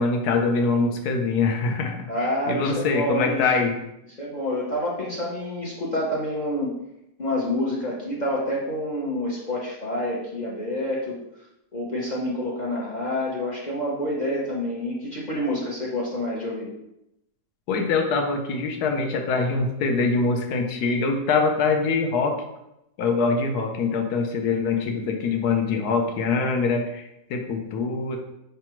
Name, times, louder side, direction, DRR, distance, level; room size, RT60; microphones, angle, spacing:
voice 1, 0.0-3.8 17.7-22.4 23.0-28.2, left 4 dB, 75° left, 4 dB, 1.1 m, -24 dB
voice 2, 2.1-3.4 4.2-6.7 7.2-11.1 11.7-16.7, left 1 dB, 40° left, -5 dB, 0.6 m, -28 dB
4.8 x 3.4 x 2.9 m, 0.85 s
omnidirectional pair, 1.8 m